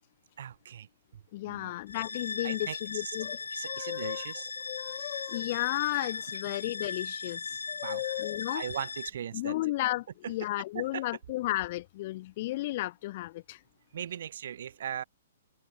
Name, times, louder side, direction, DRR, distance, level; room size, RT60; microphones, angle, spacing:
voice 1, 0.4-0.9 1.1-1.7 2.4-3.2 3.5-4.5 7.8-8.0 8.5-9.6 10.2-10.3 10.7-11.0 13.9-15.0, right 9 dB, 55° right, 5.1 m, -39 dB
voice 2, 1.3-3.4 3.7-4.2 4.7-8.6 9.3-13.6, left 17 dB, 40° left, 1.0 m, -33 dB
sound 1, 1.9-9.1, left 5 dB, 70° left, 2.6 m, -38 dB
figure-of-eight pair, 115°, 0 cm